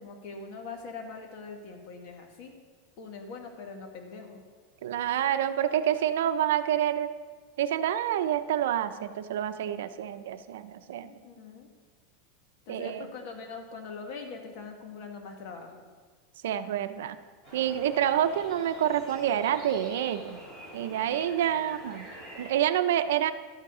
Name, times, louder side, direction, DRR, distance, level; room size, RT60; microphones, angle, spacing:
voice 1, 0.0-2.5 3.0-4.4 11.0-11.7 12.7-15.9, left 4 dB, 50° left, 3 dB, 1.8 m, -42 dB
voice 2, 4.8-7.1 7.6-11.1 12.7-13.1 16.4-17.2 17.5-20.4 20.7-22.0 22.3-23.3, right 10 dB, 80° right, 10 dB, 0.7 m, -28 dB
sound 1, 17.4-22.5, right 1 dB, 15° left, 3.8 m, -46 dB
12.5 x 7.4 x 5.0 m, 1.5 s
supercardioid pair, 155°, 0 cm